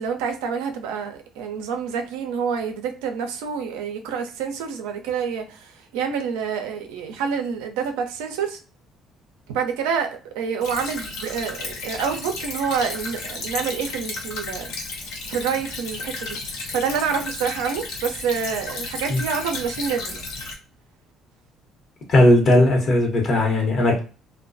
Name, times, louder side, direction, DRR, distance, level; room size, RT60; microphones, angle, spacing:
voice 1, 0.0-8.6 9.5-10.1 10.3-14.7 15.3-20.2, right 6 dB, 90° right, 0.4 m, -27 dB
Stream / Trickle dribble, 10.6-20.5, left 3 dB, 80° left, 0.7 m, -33 dB
voice 2, 22.1-24.0, left 1 dB, 55° left, 0.9 m, -17 dB
2.2 x 2.2 x 2.5 m
supercardioid pair, 70°, 0 cm